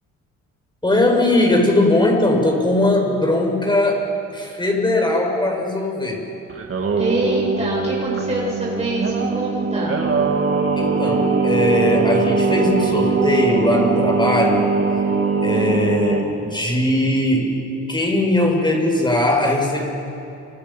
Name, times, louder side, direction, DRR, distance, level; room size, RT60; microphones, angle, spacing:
voice 1, 0.8-6.2 10.8-14.7 15.4-17.5 17.9-19.9, left 1 dB, 15° left, 1 dB, 6.7 m, -19 dB
Singing, 6.5-16.3, right 4 dB, 45° right, 3.1 m, -21 dB
voice 2, 7.0-10.0 15.5-15.8, right 1 dB, 20° right, -5 dB, 7.9 m, -25 dB
29.5 x 25.5 x 5.8 m, 2.8 s
cardioid pair, 90°, 30 cm